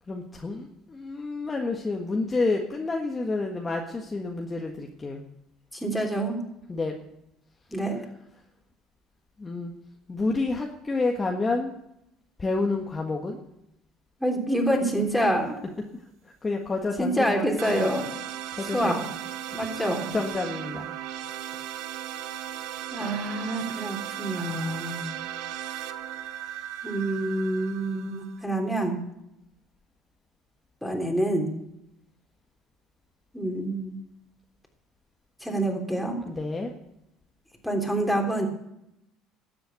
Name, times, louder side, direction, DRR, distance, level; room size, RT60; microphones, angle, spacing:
voice 1, 0.1-5.2 6.7-6.9 9.4-9.7 10.1-11.7 12.4-13.4 16.2-17.8 18.6-19.0 20.1-20.9 36.3-36.7, left 3 dB, 25° left, 1 dB, 1.5 m, -29 dB
voice 2, 5.7-6.4 7.7-8.0 14.2-15.6 17.0-18.1 18.7-19.1 19.5-20.1 22.9-25.1 26.8-29.0 30.8-31.5 33.3-33.9 35.4-36.2 37.6-38.5, right 1 dB, ahead, 1 dB, 3.4 m, -27 dB
sound 1, 17.6-28.4, right 11 dB, 75° right, 0.9 m, -36 dB
13.0 x 7.8 x 8.3 m, 0.82 s
supercardioid pair, 90°, 0 cm